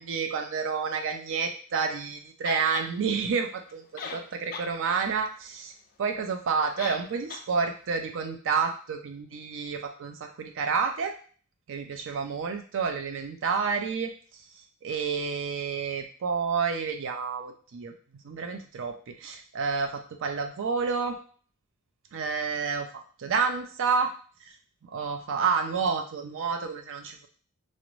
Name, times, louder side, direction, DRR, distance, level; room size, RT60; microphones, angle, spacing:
voice 1, 0.0-5.7 6.0-11.1 11.7-14.1 14.8-17.9 18.2-21.2 22.1-22.9 23.2-24.1 24.8-27.3, right 5 dB, 60° right, 5 dB, 0.4 m, -29 dB
sound 1, 2.4-2.9 3.7-3.8 4.0-4.7 5.1-5.2 6.8-7.0 7.3-7.4, left 5 dB, 40° left, 0.3 m, -37 dB
2.5 x 2.0 x 3.0 m, 0.42 s
head